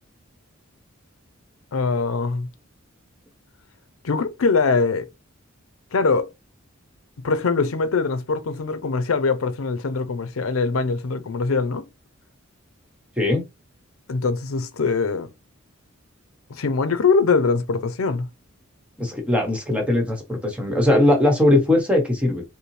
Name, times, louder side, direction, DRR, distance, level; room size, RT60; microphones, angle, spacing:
voice 1, 1.7-2.5 4.0-5.1 5.9-6.3 7.2-11.9 14.1-15.3 16.5-18.3, left 4 dB, 85° left, 0.5 m, -22 dB
voice 2, 19.0-22.4, left 1 dB, 5° right, 1.0 m, -20 dB
5.4 x 2.1 x 3.1 m
head